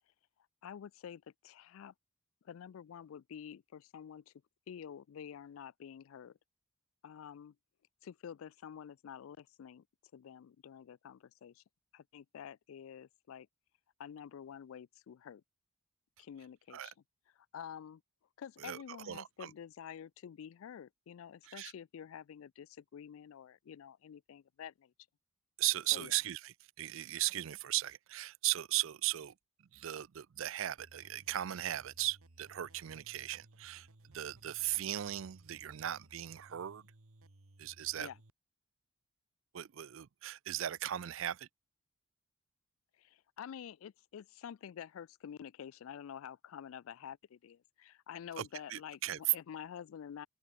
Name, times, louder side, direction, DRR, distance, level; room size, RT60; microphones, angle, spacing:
voice 1, 0.6-1.9 2.4-4.3 4.7-6.4 7.0-7.5 8.0-9.8 10.1-11.6 11.9-13.5 14.0-15.4 16.2-16.9 17.5-18.0 18.4-24.9 25.9-26.1 38.0-38.1 43.0-50.3, left 8 dB, 75° left, 0.3 m, -49 dB
voice 2, 18.6-19.5 21.4-21.7 25.6-29.3 29.6-36.9 37.6-38.1 39.5-41.5 48.4-49.3, right 14 dB, 65° right, 0.4 m, -37 dB
sound 1, 30.8-38.3, right 2 dB, 80° right, 1.7 m, -61 dB
open air
head